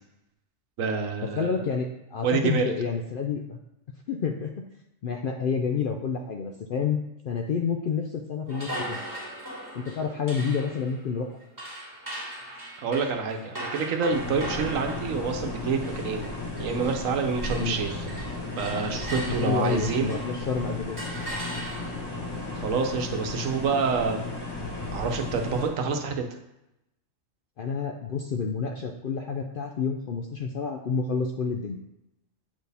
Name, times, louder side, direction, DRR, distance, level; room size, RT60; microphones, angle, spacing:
voice 1, 0.8-1.6 2.2-2.7 12.8-16.3 16.6-18.1 18.6-20.2 22.5-24.3 24.9-26.3, right 5 dB, 80° right, 4 dB, 1.2 m, -27 dB
voice 2, 1.3-3.6 4.1-4.7 5.0-7.0 7.2-9.0 9.7-11.3 17.5-17.8 19.1-21.0 27.6-31.8, left 5 dB, 65° left, 3 dB, 0.5 m, -29 dB
sound 1, 8.5-17.1 17.4-20.4 21.0-22.2, right 1 dB, 15° right, 1.9 m, -39 dB
sound 2, 14.1-25.7, left 2 dB, 20° left, 1.1 m, -35 dB
8.1 x 4.5 x 3.4 m, 0.89 s
omnidirectional pair, 1.4 m